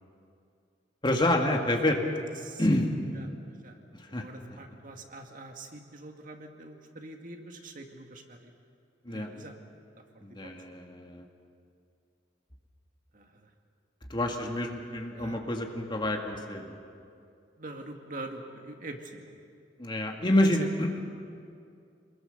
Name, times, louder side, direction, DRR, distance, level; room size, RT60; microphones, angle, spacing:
voice 1, 1.0-2.0 2.6-3.0 4.1-4.2 4.5-4.6 9.1-9.3 10.2-11.3 14.1-16.8 19.8-21.0, left 1 dB, 25° left, 2 dB, 2.1 m, -28 dB
voice 2, 2.4-2.8 3.2-3.3 3.6-3.8 4.2-8.5 9.1-9.5 10.4-10.5 13.1-13.5 15.1-15.4 17.6-19.3 20.5-20.6, right 2 dB, 50° right, 3 dB, 2.0 m, -44 dB
27.0 x 21.5 x 6.7 m, 2.4 s
head